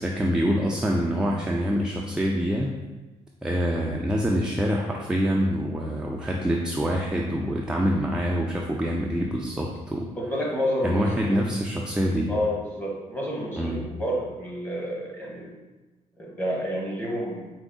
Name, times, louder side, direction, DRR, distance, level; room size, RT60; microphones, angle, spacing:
voice 1, 0.0-2.7 3.4-10.1 10.8-12.3 13.6-13.8, equal, 5° right, -1 dB, 0.4 m, -25 dB
voice 2, 10.2-11.4 12.3-15.5 16.2-17.5, equal, 15° left, -3 dB, 1.1 m, -29 dB
4.6 x 2.0 x 3.8 m, 1.1 s
cardioid pair, 95°, 13 cm